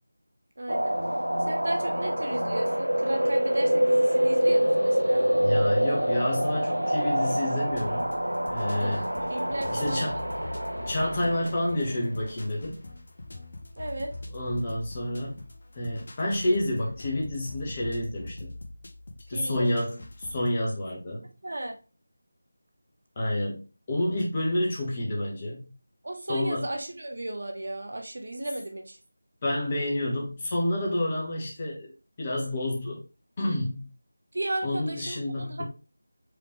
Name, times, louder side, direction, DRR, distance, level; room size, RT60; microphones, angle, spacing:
voice 1, 0.6-0.9 1.4-5.3 8.8-10.0 13.8-14.1 19.3-19.7 21.4-21.7 26.0-29.0 34.3-35.6, right 1 dB, 50° right, 4 dB, 0.9 m, -34 dB
sound 1, 0.7-11.9, equal, 80° right, 0.5 m, -26 dB
voice 2, 5.4-8.1 8.5-9.0 9.7-10.2 10.9-12.8 14.3-15.4 15.7-18.5 19.3-21.3 23.1-23.6 23.9-25.7 26.3-26.6 29.4-31.9 32.2-33.0 33.4-33.9 34.6-35.6, left 1 dB, 25° left, -2 dB, 1.3 m, -29 dB
sound 2, 7.7-20.5, left 2 dB, 45° left, 0.8 m, -43 dB
4.9 x 3.5 x 3.1 m, 0.32 s
figure-of-eight pair, 165°, 0 cm